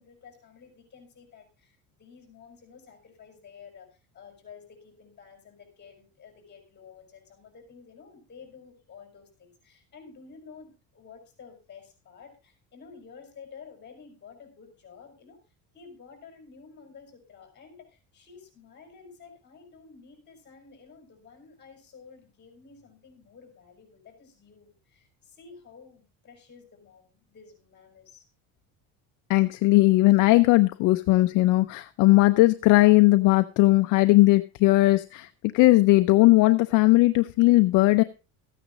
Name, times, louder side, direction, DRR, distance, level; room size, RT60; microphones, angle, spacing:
voice 1, 0.0-15.4 15.7-28.2, left 5 dB, 30° left, 5.0 m, -51 dB
voice 2, 29.3-35.3 35.5-38.0, left 19 dB, 60° left, 0.6 m, -18 dB
14.0 x 9.4 x 3.8 m
cardioid pair, 145°, 35 cm